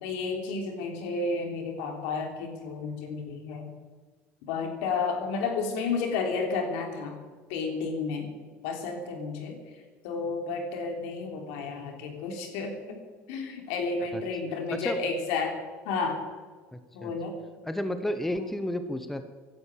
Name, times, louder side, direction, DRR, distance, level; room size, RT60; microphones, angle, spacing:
voice 1, 0.0-3.6 4.5-7.1 7.5-8.3 8.6-9.6 10.0-13.0 13.3-15.6 15.9-16.2 16.9-17.3, left 4 dB, 80° left, 3 dB, 3.6 m, -31 dB
voice 2, 16.7-17.1 17.7-19.3, left 1 dB, 5° left, 9 dB, 0.8 m, -32 dB
16.5 x 11.5 x 7.4 m, 1.4 s
cardioid pair, 165°, 6 cm